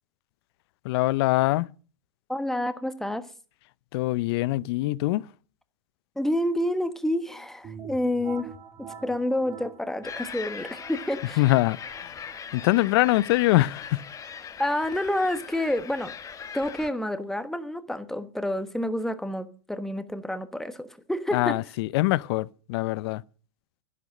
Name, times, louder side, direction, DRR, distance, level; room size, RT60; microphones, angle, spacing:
voice 1, 0.8-1.7 3.9-5.2 11.4-12.2 12.5-14.0 21.3-23.2, left 18 dB, 55° left, 0.6 m, -23 dB
voice 2, 2.3-3.3 6.1-8.5 9.0-11.4 14.6-16.1 16.5-21.6, left 1 dB, 5° left, 1.3 m, -28 dB
sound 1, 7.6-17.2, right 6 dB, 25° right, 1.9 m, -48 dB
sound 2, 10.0-16.9, left 7 dB, 20° left, 1.2 m, -40 dB
11.5 x 11.0 x 6.4 m
hypercardioid pair, 115°, 15 cm